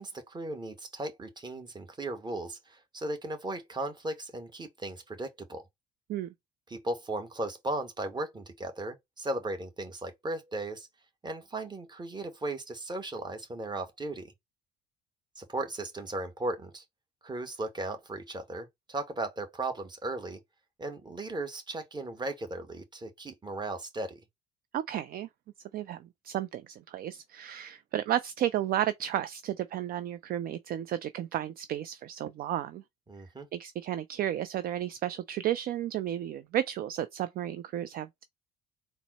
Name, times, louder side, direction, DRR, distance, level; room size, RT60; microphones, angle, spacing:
voice 1, 0.0-5.6 6.7-10.9 11.2-14.3 15.4-16.8 17.2-20.4 20.8-24.2 33.1-33.5, right 2 dB, 20° right, 1.2 m, -36 dB
voice 2, 24.7-25.3 25.7-32.8 33.5-38.2, right 11 dB, 45° right, 0.4 m, -33 dB
4.0 x 2.1 x 4.1 m
hypercardioid pair, 55°, 20 cm